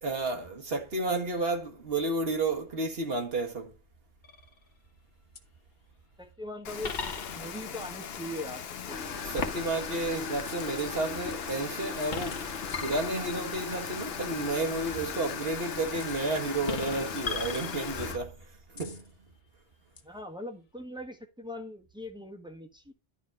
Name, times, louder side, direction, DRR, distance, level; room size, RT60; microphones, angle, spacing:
voice 1, 0.0-3.7 9.3-12.5 12.8-19.0, right 2 dB, 60° right, 1.7 m, -31 dB
sound 1, 4.2-4.7 5.4-5.5 6.8-7.7 10.4-10.9 12.0-13.6 16.0-16.3 16.7-18.2 18.8-19.1 20.0-20.1, left 5 dB, 45° left, 1.1 m, -39 dB
voice 2, 6.2-9.3 20.0-22.9, left 1 dB, 5° right, 1.3 m, -41 dB
Rain, 6.6-18.1, left 8 dB, 65° left, 0.9 m, -41 dB
sound 2, 8.9-18.2, left 5 dB, 85° left, 1.6 m, -39 dB
11.5 x 4.0 x 5.3 m
omnidirectional pair, 1.2 m